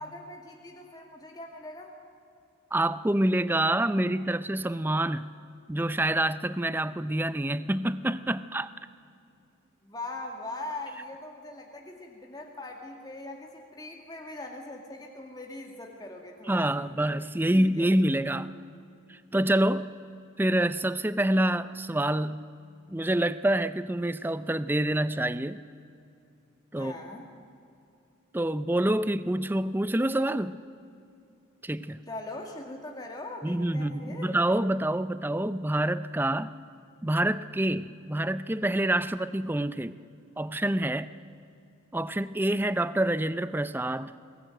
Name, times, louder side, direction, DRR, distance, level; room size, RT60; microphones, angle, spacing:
voice 1, 0.0-1.9 9.8-16.6 17.5-17.9 26.8-27.3 32.1-34.3, left 2 dB, 20° left, 1 dB, 2.1 m, -41 dB
voice 2, 2.7-5.3 5.7-8.7 16.5-18.5 19.1-19.9 20.4-22.4 22.9-25.6 26.7-27.0 28.3-30.6 31.6-32.0 33.4-36.5 37.0-39.9 40.4-41.1 41.9-44.1, right 1 dB, 10° right, 14 dB, 0.4 m, -27 dB
22.0 x 19.5 x 9.0 m, 2.6 s
head